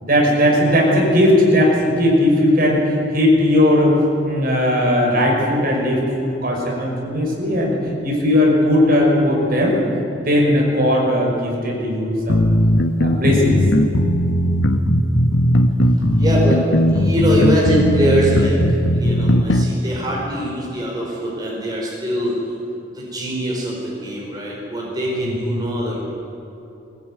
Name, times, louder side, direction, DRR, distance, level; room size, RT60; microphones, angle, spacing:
voice 1, 0.0-4.0 4.2-7.8 8.0-9.8 10.2-12.5 13.0-13.6, left 1 dB, 50° right, -1 dB, 5.8 m, -17 dB
sound 1, 12.3-19.7, equal, 80° left, 1.4 m, -17 dB
voice 2, 16.1-16.6 16.9-18.6 18.9-22.3 22.9-26.1, equal, 20° right, -4 dB, 4.7 m, -22 dB
21.0 x 19.5 x 9.5 m, 2.9 s
head